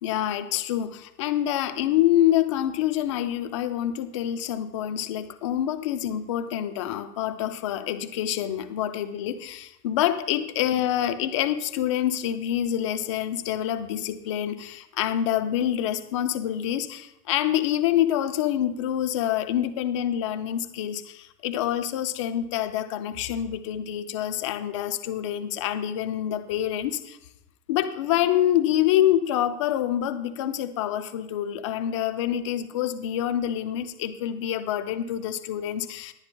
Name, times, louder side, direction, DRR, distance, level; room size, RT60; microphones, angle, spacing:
voice 1, 0.0-27.2 27.7-36.1, left 11 dB, 25° left, 10 dB, 0.3 m, -26 dB
21.0 x 9.6 x 2.2 m, 0.83 s
hypercardioid pair, 130°, 47 cm